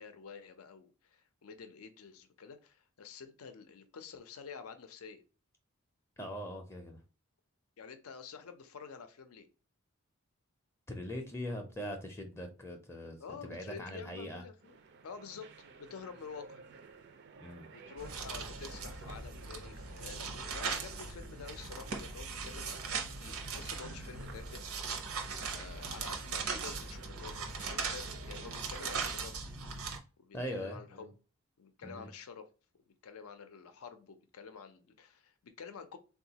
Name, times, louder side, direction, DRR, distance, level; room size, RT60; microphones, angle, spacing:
voice 1, 0.0-5.2 7.8-9.5 13.2-14.8 15.0-15.5 15.8-16.6 17.7-25.2 25.5-29.3 30.2-31.1 31.6-32.5 33.0-36.0, left 6 dB, 85° left, 0.5 m, -49 dB
voice 2, 6.2-7.0 10.9-14.4 17.4-17.7 30.3-31.1 31.8-32.1, equal, 10° left, 0.4 m, -41 dB
sound 1, 14.6-29.2, right 5 dB, 50° right, 0.4 m, -54 dB
sound 2, 18.0-30.0, right 5 dB, 85° right, 0.7 m, -39 dB
3.6 x 2.3 x 2.8 m
head